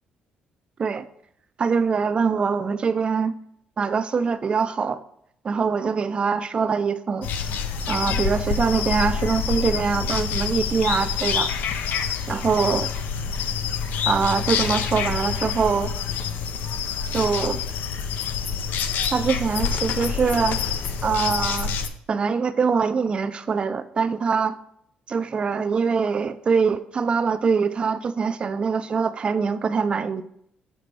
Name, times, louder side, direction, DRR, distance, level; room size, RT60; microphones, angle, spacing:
voice 1, 1.6-3.4 3.8-5.0 5.4-7.3 7.9-11.5 12.3-12.9 14.1-15.9 17.1-17.6 19.1-20.6 21.0-21.7 22.1-24.6 25.1-30.2, right 5 dB, 35° right, 13 dB, 0.4 m, -23 dB
sound 1, 7.2-21.9, left 6 dB, 75° left, 0.5 m, -27 dB
7.5 x 5.0 x 3.3 m, 0.72 s
cardioid pair, 130°, 3 cm